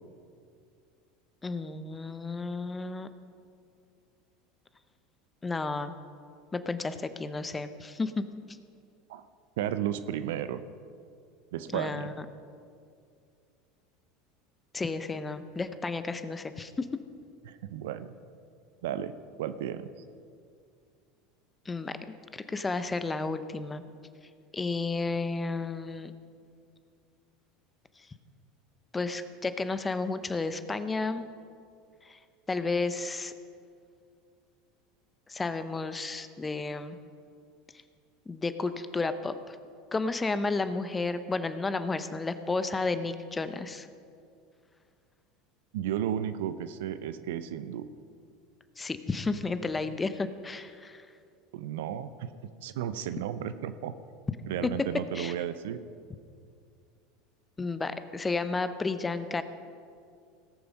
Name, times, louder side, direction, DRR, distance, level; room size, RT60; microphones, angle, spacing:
voice 1, 1.4-3.1 5.4-5.9 6.5-8.2 11.7-12.1 14.7-16.9 21.7-22.0 22.3-23.8 24.5-26.1 28.9-31.3 32.0-32.2 32.5-33.3 35.3-37.0 38.3-39.6 39.9-43.9 48.8-51.0 55.1-55.3 57.6-59.4, left 3 dB, 20° left, 11 dB, 0.8 m, -32 dB
voice 2, 9.6-10.6 11.5-12.1 17.5-18.1 18.8-19.1 19.4-19.9 45.7-47.9 51.5-52.3 52.6-53.9 54.5-55.8, right 10 dB, 70° right, 12 dB, 0.6 m, -33 dB
18.5 x 6.9 x 5.3 m, 2.3 s
hypercardioid pair, 80°, 0 cm